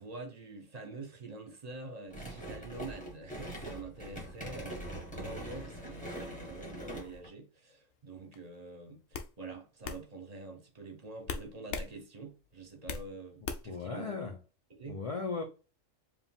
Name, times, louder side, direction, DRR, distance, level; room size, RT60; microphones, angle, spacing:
voice 1, 0.0-14.1 14.7-15.0, right 3 dB, 35° right, 1.1 m, -46 dB
sound 1, 2.1-7.3, right 1 dB, 5° left, 1.5 m, -43 dB
sound 2, 8.3-8.6 9.1-9.3 9.8-10.0 11.3-11.9 12.3-13.1 13.4-13.8, left 5 dB, 65° left, 0.9 m, -38 dB
voice 2, 13.6-14.4 14.9-15.4, left 4 dB, 40° left, 0.5 m, -36 dB
4.8 x 2.5 x 3.5 m
omnidirectional pair, 1.3 m